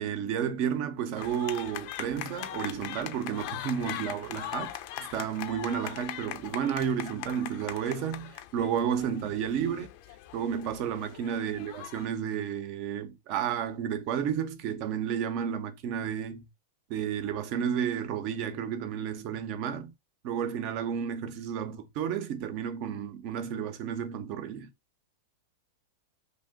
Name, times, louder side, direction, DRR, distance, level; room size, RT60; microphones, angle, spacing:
voice 1, 0.0-4.8 5.1-9.9 10.3-16.4 16.9-19.9 20.2-24.7, right 8 dB, 50° right, 0.6 m, -32 dB
sound 1, 1.2-12.1, left 13 dB, 50° left, 0.4 m, -41 dB
2.8 x 2.1 x 3.5 m
hypercardioid pair, 110°, 0 cm